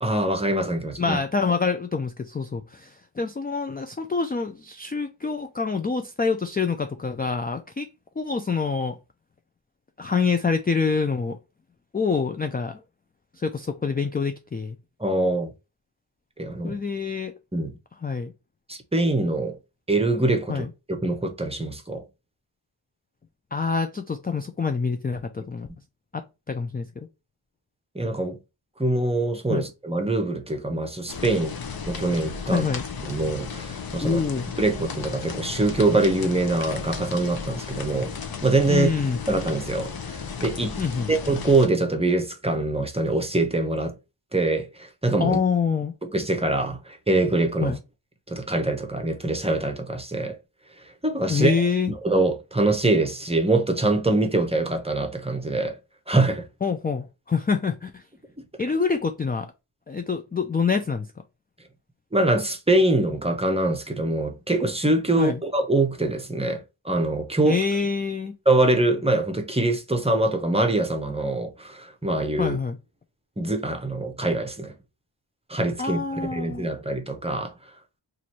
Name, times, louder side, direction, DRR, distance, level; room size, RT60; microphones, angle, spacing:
voice 1, 0.0-1.2 15.0-15.5 16.4-16.8 17.5-17.8 18.7-19.6 19.9-22.0 27.9-28.4 28.8-31.5 31.9-32.6 33.0-34.2 34.6-38.1 38.4-38.9 39.3-40.7 41.1-44.0 44.3-45.4 46.1-47.8 48.3-50.4 51.0-51.5 52.0-55.8 56.1-56.5 62.1-67.6 68.5-72.6 73.4-74.7 75.5-77.5, right 2 dB, 15° right, 0.7 m, -24 dB
voice 2, 1.0-7.9 8.2-9.0 10.0-11.4 11.9-12.8 13.4-14.8 16.6-17.3 18.0-18.3 20.5-20.7 23.5-25.7 26.1-27.1 29.5-29.6 32.5-32.8 34.0-34.5 38.7-39.2 40.8-41.1 45.2-45.9 47.6-47.8 51.3-51.9 56.6-58.0 58.6-59.5 59.9-61.1 65.2-65.4 67.4-68.4 72.4-72.8 75.8-76.7, left 5 dB, 20° left, 0.3 m, -26 dB
sound 1, 31.1-41.7, left 5 dB, 50° left, 0.7 m, -34 dB
3.0 x 2.5 x 4.0 m
wide cardioid pair, 100°, 48 cm